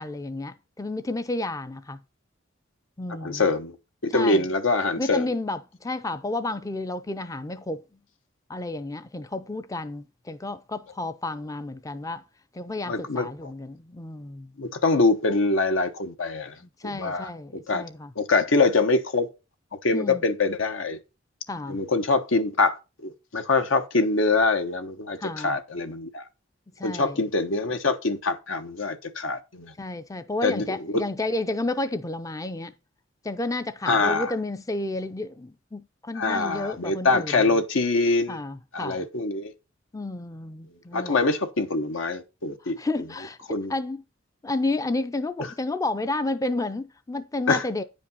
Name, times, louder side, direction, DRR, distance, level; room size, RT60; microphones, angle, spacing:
voice 1, 0.0-2.0 3.0-3.5 4.1-4.5 5.0-7.8 8.5-12.2 12.5-14.5 16.6-18.1 19.9-20.2 21.5-21.8 25.2-25.6 26.8-27.2 29.8-32.7 33.2-37.6 38.3-39.1 39.9-41.2 42.6-44.0 44.4-47.8, left 2 dB, 15° left, 0.5 m, -31 dB
voice 2, 3.2-3.8 4.0-5.2 12.9-13.5 14.6-16.5 16.8-17.9 18.2-19.3 19.8-21.0 21.7-26.2 26.8-29.7 30.4-31.0 33.9-34.3 36.1-38.4 38.7-39.5 40.9-42.8 43.5-43.7 47.5-47.7, left 3 dB, 80° left, 1.1 m, -24 dB
9.5 x 5.2 x 5.4 m
head